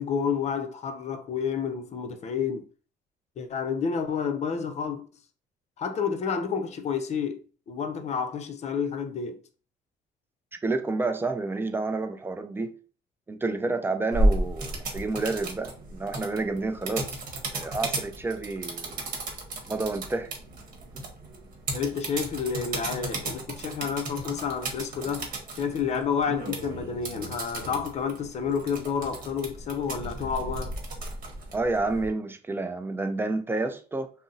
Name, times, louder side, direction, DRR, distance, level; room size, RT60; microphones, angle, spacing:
voice 1, 0.0-2.7 3.4-5.1 5.8-7.4 7.7-9.4 21.7-25.3 25.6-30.7, left 6 dB, 40° left, 0.5 m, -30 dB
voice 2, 10.6-12.8 13.3-17.1 17.5-19.0 19.7-20.3 20.9-21.0 31.5-34.1, right 3 dB, 15° right, 0.4 m, -29 dB
sound 1, 14.1-32.1, right 1 dB, 55° right, 1.0 m, -33 dB
2.6 x 2.0 x 3.8 m
cardioid pair, 110°, 17 cm